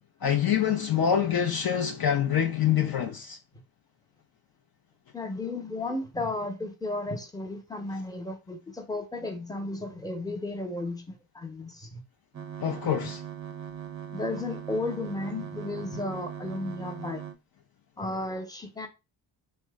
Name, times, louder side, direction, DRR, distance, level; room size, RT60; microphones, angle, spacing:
voice 1, 0.2-3.4 12.6-13.2, left 9 dB, 50° left, 0.6 m, -25 dB
voice 2, 5.1-12.0 14.1-17.2 18.0-18.9, left 2 dB, 10° left, 0.8 m, -34 dB
sound 1, 12.3-17.3, right 9 dB, 35° right, 0.5 m, -40 dB
2.9 x 2.1 x 3.4 m
supercardioid pair, 45°, 49 cm